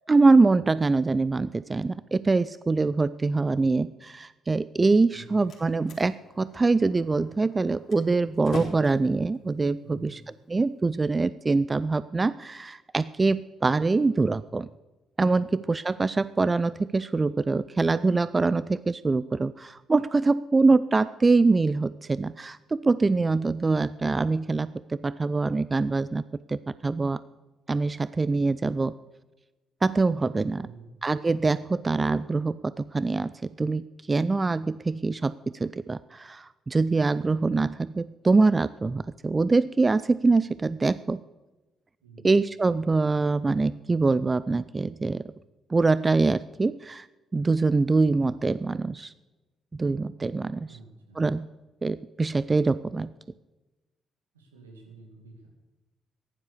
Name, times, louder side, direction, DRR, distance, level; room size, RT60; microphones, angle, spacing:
voice 1, 0.1-10.2 10.5-14.7 15.2-26.2 26.5-27.2 27.7-28.9 29.8-30.6 31.0-41.2 42.2-45.2 45.7-47.1 47.3-49.1 49.7-50.7 51.2-51.5 51.8-53.1, right 3 dB, 25° right, 17 dB, 0.4 m, -24 dB
Slam, 4.9-10.9, left 4 dB, 45° left, 3.9 m, -44 dB
voice 2, 9.8-10.2 30.6-30.9 42.0-42.4 50.7-51.2 54.3-55.5, right 3 dB, 80° right, 1 dB, 2.4 m, -49 dB
15.0 x 10.5 x 6.8 m, 1.1 s
figure-of-eight pair, 40°, 0 cm